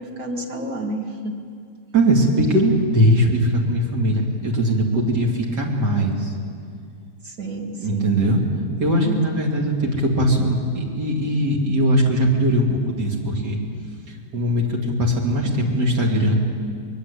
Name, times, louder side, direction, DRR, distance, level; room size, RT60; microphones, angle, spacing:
voice 1, 0.0-1.4 7.2-8.2 9.0-9.5, right 1 dB, 60° right, 0 dB, 2.5 m, -30 dB
voice 2, 1.9-6.3 7.8-8.4 8.8-13.6 14.1-16.3, right 1 dB, 85° right, -1 dB, 3.8 m, -20 dB
23.0 x 21.5 x 8.6 m, 2.2 s
omnidirectional pair, 1.8 m